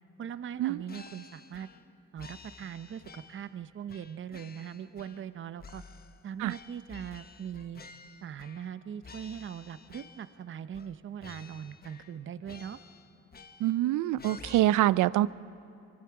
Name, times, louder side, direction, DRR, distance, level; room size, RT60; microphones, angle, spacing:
voice 1, 0.2-1.7 2.1-5.8 6.2-7.8 8.2-12.8, right 8 dB, 40° right, 13 dB, 0.7 m, -41 dB
sound 1, 0.9-1.9 2.2-3.5 3.9-5.3 5.6-8.8 9.0-10.4 10.7-10.9 11.2-12.2 12.5-13.8 14.2-14.6, left 4 dB, 30° left, 1.0 m, -51 dB
voice 2, 13.6-15.3, right 15 dB, 80° right, 19 dB, 0.5 m, -25 dB
24.0 x 24.0 x 4.8 m, 2.8 s
cardioid pair, 90°, 30 cm